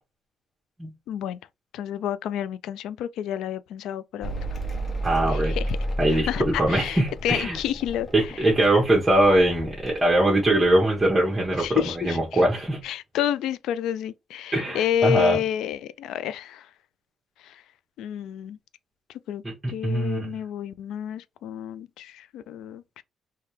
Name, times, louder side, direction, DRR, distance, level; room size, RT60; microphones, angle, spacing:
voice 1, 1.1-1.4 1.7-4.3 5.3-5.7 6.1-8.3 11.6-12.4 12.8-16.7 17.4-17.6 18.0-18.6 19.3-19.4 19.7-23.0, left 10 dB, 85° left, 0.3 m, -30 dB
Mechanical fan, 4.2-11.1 11.3-12.2, right 1 dB, 40° left, 1.0 m, -32 dB
voice 2, 5.0-5.6 6.0-7.6 8.1-12.8 14.5-15.4 19.4-20.3, right 1 dB, 15° right, 1.1 m, -22 dB
3.4 x 2.8 x 3.1 m
cardioid pair, 90°, 0 cm